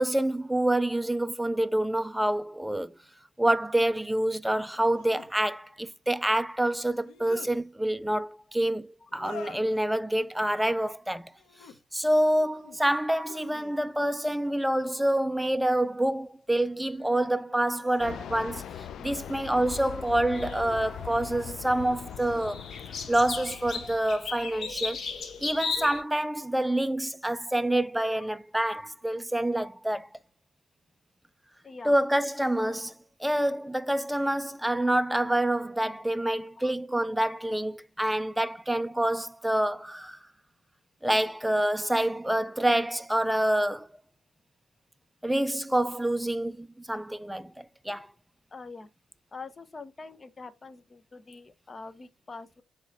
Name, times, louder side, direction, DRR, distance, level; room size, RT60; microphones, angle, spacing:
voice 1, 0.0-3.0 3.4-11.3 11.9-18.7 19.0-22.6 23.1-30.1 31.9-32.9 33.2-40.2 41.0-43.9 45.2-48.1, right 1 dB, 5° right, 0.5 m, -27 dB
sound 1, 2.3-2.4 4.7-5.3 6.8-7.6 9.1-9.8 11.3-11.8 12.3-12.8 13.2-14.1 15.3-16.0 16.6-18.6 19.7-20.2 20.8-21.3, left 6 dB, 85° left, 1.1 m, -50 dB
Fixed-wing aircraft airplane, 18.0-24.0, left 9 dB, 65° left, 0.4 m, -41 dB
sound 2, 20.3-26.0, left 5 dB, 50° left, 1.3 m, -36 dB
voice 2, 31.6-31.9 36.6-36.7 38.0-38.2 48.5-48.9 49.3-52.6, left 3 dB, 30° left, 0.9 m, -44 dB
7.2 x 3.1 x 4.2 m
cardioid pair, 90°, 0 cm